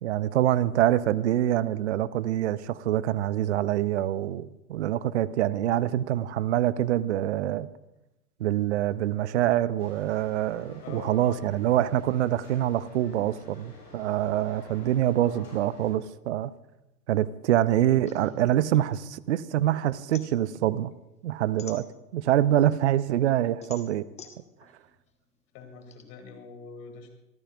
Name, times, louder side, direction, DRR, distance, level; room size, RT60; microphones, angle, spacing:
voice 1, 0.0-7.7 8.4-16.5 17.1-20.9 21.2-21.9 22.1-24.1, right 12 dB, 45° right, 19 dB, 0.6 m, -25 dB
sound 1, 9.8-15.9, left 2 dB, 85° left, 6.1 m, -49 dB
voice 2, 10.8-11.4 25.5-27.1, left 4 dB, 30° left, 5 dB, 2.8 m, -43 dB
sound 2, 18.1-19.6 19.9-22.4 22.9-26.0, left 7 dB, 15° left, 1.2 m, -49 dB
25.5 x 14.5 x 2.6 m, 0.97 s
figure-of-eight pair, 115°, 49 cm